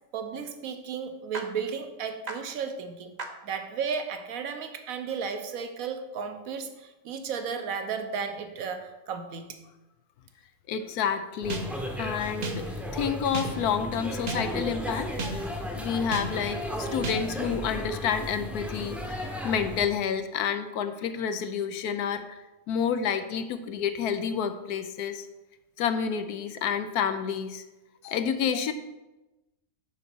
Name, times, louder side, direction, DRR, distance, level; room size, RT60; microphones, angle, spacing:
voice 1, 0.1-3.1 3.4-9.6, right 6 dB, 65° right, 7 dB, 1.2 m, -34 dB
sound 1, 1.3-1.4 2.3-2.4 3.2-3.3 11.5-11.9 12.4-12.8 13.3-13.8 14.3-14.7 15.2-15.6 16.1-16.5 17.0-17.5, right 3 dB, 35° right, 0.7 m, -35 dB
voice 2, 10.7-11.7 12.0-15.5 15.7-22.4 22.7-25.3 25.8-27.6 28.0-28.7, left 7 dB, 75° left, 9 dB, 1.1 m, -29 dB
sound 2, 11.4-19.9, left 1 dB, ahead, 0.8 m, -35 dB
9.1 x 4.0 x 6.1 m, 1.0 s
omnidirectional pair, 1.7 m